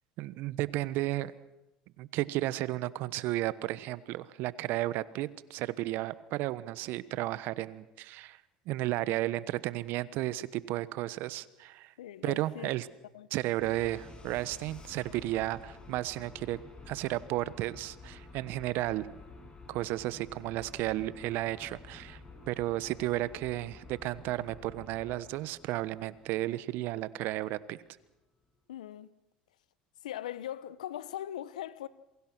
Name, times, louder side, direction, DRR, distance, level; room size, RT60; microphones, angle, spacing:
voice 1, 0.2-1.3 2.0-8.4 8.7-11.9 12.2-12.9 13.3-16.6 16.9-19.1 19.7-22.2 22.5-27.8, right 16 dB, 60° right, 1.2 m, -33 dB
voice 2, 12.0-12.7 13.1-13.3 28.7-29.1 30.0-31.9, left 12 dB, 85° left, 1.0 m, -40 dB
sound 1, 13.6-27.5, left 3 dB, 20° left, 6.5 m, -51 dB
27.5 x 23.0 x 6.1 m
hypercardioid pair, 80°, 4 cm